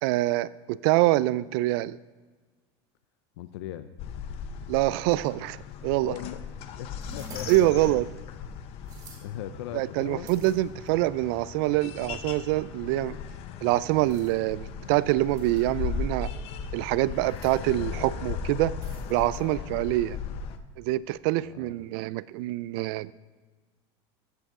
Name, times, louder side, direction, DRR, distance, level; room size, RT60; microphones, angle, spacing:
voice 1, 0.0-2.0 4.7-5.6 5.8-6.1 7.5-8.1 9.7-13.2 13.6-16.3 16.7-18.7 19.1-20.2 20.8-23.1, right 17 dB, 65° right, 19 dB, 0.4 m, -25 dB
voice 2, 3.4-4.0 6.0-7.7 9.2-10.3 19.4-19.7 21.4-21.8, left 11 dB, 90° left, 10 dB, 0.6 m, -39 dB
sound 1, 4.0-20.6, left 6 dB, 45° left, 0.7 m, -37 dB
sound 2, 7.0-8.1 8.8-9.2 10.3-11.1 11.9-12.0 14.0-14.3 15.4-15.8 17.1-17.5 18.8-19.4, right 2 dB, 30° right, 2.2 m, -48 dB
14.0 x 7.9 x 3.7 m, 1.4 s
supercardioid pair, 145°, 13 cm